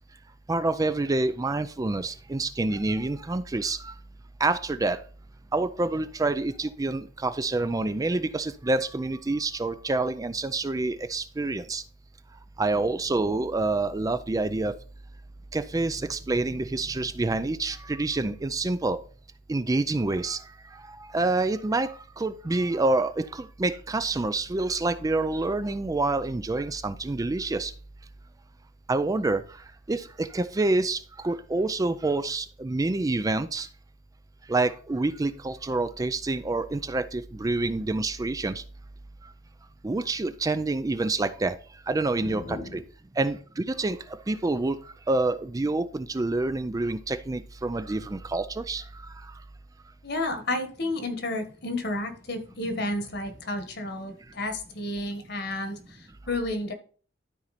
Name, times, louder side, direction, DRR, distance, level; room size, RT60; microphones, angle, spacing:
voice 1, 0.5-3.9 4.4-5.0 5.5-11.8 12.6-14.7 15.5-19.0 19.5-20.4 20.9-27.7 28.9-29.4 29.9-33.7 34.5-38.6 39.8-41.6 41.9-42.8 43.2-44.0 44.3-44.8 45.1-48.8, right 2 dB, 20° right, 12 dB, 0.4 m, -27 dB
voice 2, 42.2-42.8 50.0-56.7, left 2 dB, 65° left, 7 dB, 1.5 m, -31 dB
12.5 x 4.3 x 4.1 m, 0.41 s
head